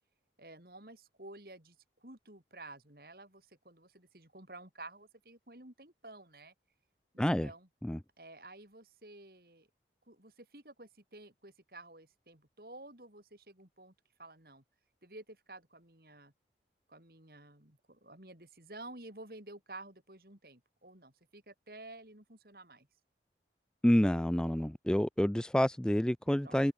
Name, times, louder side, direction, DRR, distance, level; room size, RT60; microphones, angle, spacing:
voice 1, 0.4-6.5 7.1-7.7 8.2-9.7 10.1-13.9 14.2-14.6 15.0-16.3 16.9-22.9 26.4-26.6, right 2 dB, 55° right, 4.7 m, -52 dB
voice 2, 7.2-7.5 7.8-8.0 23.8-26.7, equal, 5° left, 0.3 m, -28 dB
head